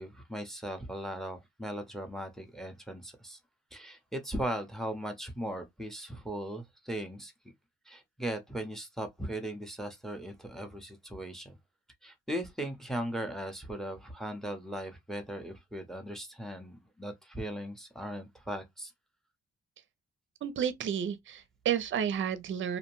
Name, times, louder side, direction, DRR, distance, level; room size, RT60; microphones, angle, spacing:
voice 1, 0.0-3.4 3.7-7.3 7.9-11.5 12.0-18.9, right 1 dB, ahead, 0.6 m, -38 dB
voice 2, 20.4-22.8, right 8 dB, 40° right, 0.5 m, -31 dB
2.6 x 2.1 x 3.0 m
cardioid pair, 90°, 30 cm